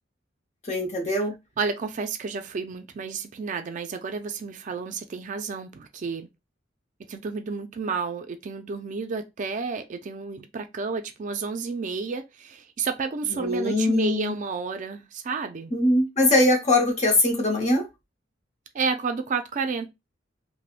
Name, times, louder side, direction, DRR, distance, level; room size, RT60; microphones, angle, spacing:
voice 1, 0.7-1.3 13.3-14.3 15.7-17.9, left 1 dB, 40° left, 0.9 m, -22 dB
voice 2, 1.6-6.3 7.1-15.7 18.7-19.9, right 5 dB, 45° right, 0.4 m, -31 dB
3.4 x 2.1 x 2.4 m
head